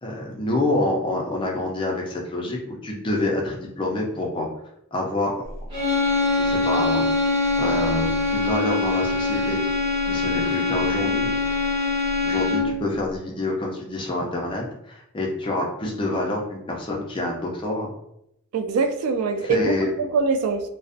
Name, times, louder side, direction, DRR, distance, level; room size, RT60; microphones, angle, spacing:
voice 1, 0.0-4.5 4.9-5.5 6.3-7.0 7.6-9.6 10.1-11.3 12.2-17.9 19.4-19.9, left 2 dB, 20° left, -1 dB, 0.4 m, -27 dB
sound 1, 5.7-12.9, left 3 dB, 20° right, 0.7 m, -23 dB
voice 2, 18.5-20.6, right 4 dB, 85° right, 6 dB, 0.3 m, -23 dB
2.4 x 2.0 x 2.5 m, 0.78 s
head